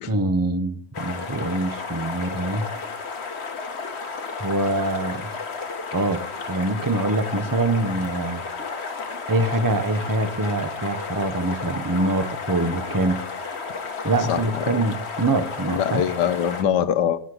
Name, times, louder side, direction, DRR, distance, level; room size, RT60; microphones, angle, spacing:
voice 1, 0.1-2.7 4.4-5.3 5.9-8.4 9.3-13.2 14.0-16.0, right 2 dB, 15° right, 10 dB, 0.7 m, -24 dB
sound 1, 0.9-16.6, left 4 dB, 40° left, 1.5 m, -32 dB
voice 2, 14.3-14.8 15.7-17.2, left 9 dB, 80° left, 12 dB, 1.5 m, -23 dB
16.0 x 8.9 x 4.9 m, 0.64 s
omnidirectional pair, 1.8 m